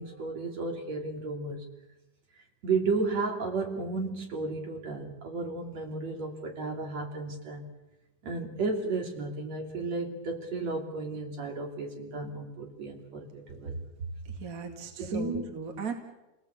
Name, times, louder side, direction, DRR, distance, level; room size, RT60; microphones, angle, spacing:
voice 1, 0.0-1.6 2.6-7.7 8.2-13.7 15.0-15.4, right 3 dB, 55° right, 2 dB, 4.2 m, -33 dB
voice 2, 14.2-15.9, right 4 dB, 30° right, 4 dB, 2.4 m, -37 dB
29.5 x 18.5 x 8.3 m, 1.0 s
omnidirectional pair, 3.8 m